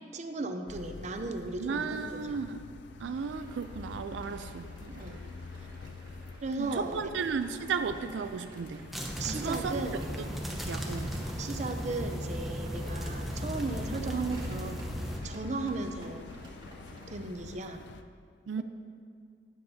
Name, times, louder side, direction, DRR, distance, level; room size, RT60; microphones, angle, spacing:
voice 1, 0.1-2.2 4.8-5.2 6.4-7.0 9.2-10.1 11.4-14.8 15.2-16.3 17.1-17.8, right 3 dB, 40° right, 6 dB, 0.6 m, -36 dB
sound 1, 0.7-18.0, left 4 dB, 75° left, 0.4 m, -47 dB
voice 2, 1.6-2.6 3.0-4.7 6.6-8.8 9.3-9.8 10.3-11.2 18.5-18.6, right 5 dB, 90° right, 9 dB, 0.4 m, -34 dB
sound 2, 3.0-17.2, equal, 25° right, 1.6 m, -52 dB
sound 3, 8.9-15.2, equal, ahead, 0.8 m, -36 dB
12.0 x 9.6 x 2.7 m, 2.3 s
head